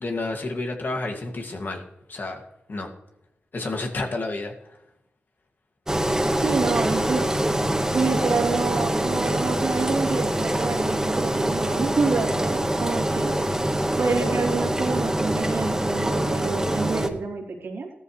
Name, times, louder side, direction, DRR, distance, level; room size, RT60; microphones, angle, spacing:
voice 1, 0.0-1.8 2.1-2.4 2.7-2.9 3.5-4.8, left 2 dB, 55° left, 3 dB, 2.4 m, -30 dB
Engine, 5.9-17.1, right 1 dB, 15° right, 1.6 m, -24 dB
voice 2, 6.4-7.3 7.9-13.4 14.0-17.9, right 4 dB, 70° right, 0 dB, 3.1 m, -27 dB
16.0 x 13.5 x 3.4 m, 0.89 s
cardioid pair, 45°, 4 cm